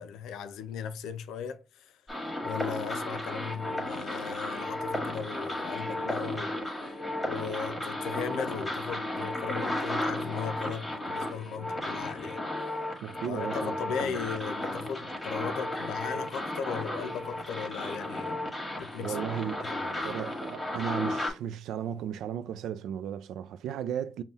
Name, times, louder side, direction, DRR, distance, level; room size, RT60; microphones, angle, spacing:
voice 1, 0.0-2.0 2.4-6.5 6.8-12.4 13.3-18.4 18.8-19.2 19.6-20.2, left 7 dB, 85° left, 0.4 m, -37 dB
sound 1, 2.1-21.3, left 1 dB, 10° left, 1.4 m, -34 dB
voice 2, 13.0-14.2 19.0-19.6 20.0-24.2, right 9 dB, 80° right, 0.3 m, -35 dB
5.3 x 2.2 x 2.8 m
cardioid pair, 90°, 0 cm